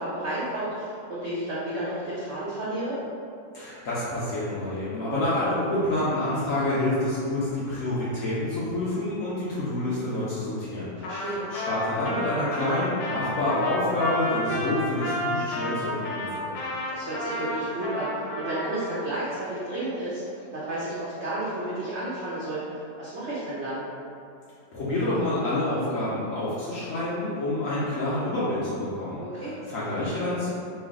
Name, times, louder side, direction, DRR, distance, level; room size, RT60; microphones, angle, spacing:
voice 1, 0.0-3.0 11.0-11.4 16.9-23.8 29.2-29.5, right 1 dB, 80° right, -9 dB, 0.6 m, -32 dB
voice 2, 3.5-16.6 24.7-30.5, left 1 dB, 70° left, -9 dB, 0.8 m, -28 dB
Trumpet, 11.0-19.0, left 1 dB, 85° left, 1.3 m, -31 dB
3.1 x 2.4 x 3.5 m, 2.5 s
omnidirectional pair, 2.0 m